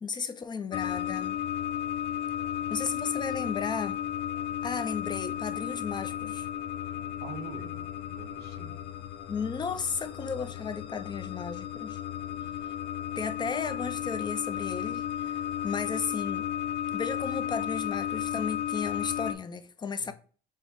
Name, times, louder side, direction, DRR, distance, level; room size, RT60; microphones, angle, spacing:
voice 1, 0.0-1.4 2.7-4.0 4.6-6.5 9.3-12.0 13.2-16.4 16.9-20.1, left 5 dB, 25° left, 0.5 m, -34 dB
sound 1, 0.7-19.3, left 10 dB, 75° left, 0.5 m, -34 dB
voice 2, 6.8-8.8 20.0-20.1, right 5 dB, 75° right, 0.9 m, -46 dB
4.8 x 2.1 x 3.9 m
cardioid pair, 110°, 17 cm